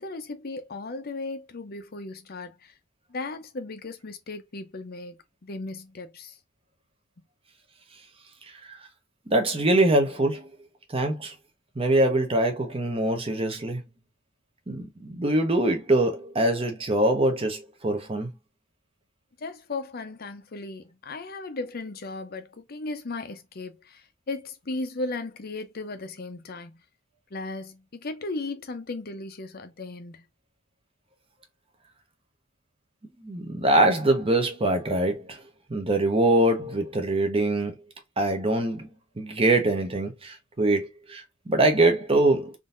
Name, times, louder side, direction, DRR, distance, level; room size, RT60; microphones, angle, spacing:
voice 1, 0.0-2.7 3.1-6.4 11.1-11.2 19.4-26.7 27.3-30.3, left 3 dB, 50° left, 0.7 m, -36 dB
voice 2, 9.3-10.5 10.9-11.3 11.8-13.8 14.7-18.3 33.2-35.4 35.7-37.7 38.2-38.9 39.2-42.5, right 1 dB, 30° right, 0.8 m, -23 dB
3.7 x 2.7 x 2.5 m
head